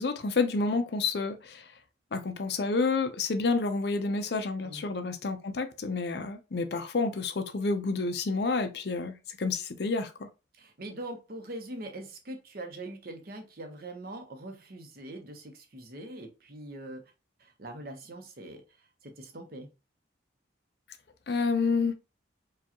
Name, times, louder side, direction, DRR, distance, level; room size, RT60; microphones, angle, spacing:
voice 1, 0.0-1.7 2.1-10.3 21.3-21.9, left 4 dB, 55° left, 0.5 m, -29 dB
voice 2, 10.5-17.1 17.4-18.6 19.0-19.7, right 1 dB, 50° right, 0.8 m, -42 dB
4.8 x 2.3 x 2.8 m
head